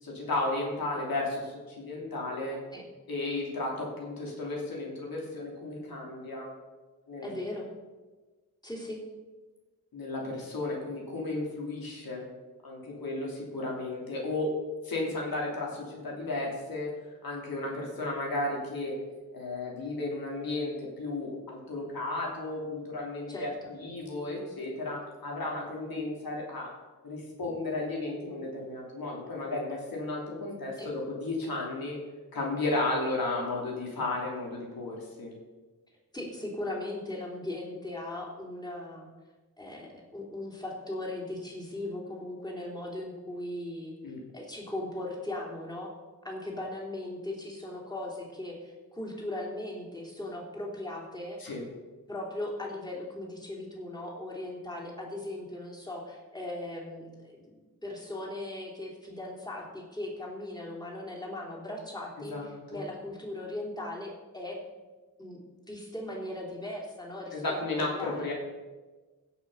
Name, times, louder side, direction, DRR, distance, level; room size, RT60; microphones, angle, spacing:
voice 1, 0.0-2.6 3.1-6.5 7.1-7.4 9.9-12.2 12.6-14.5 14.8-16.9 17.2-19.0 19.3-26.7 27.0-32.0 32.3-35.3 44.0-44.2 51.4-51.6 62.3-62.8 67.3-68.3, left 2 dB, 85° left, -2 dB, 2.8 m, -34 dB
voice 2, 7.2-7.7 8.6-9.0 23.3-23.7 30.8-30.9 36.1-39.1 39.6-44.0 44.3-45.9 46.2-51.4 52.1-64.6 65.2-65.4 65.7-68.2, left 1 dB, 10° left, -3 dB, 3.4 m, -38 dB
16.5 x 6.0 x 5.5 m, 1.3 s
cardioid pair, 65°, 35 cm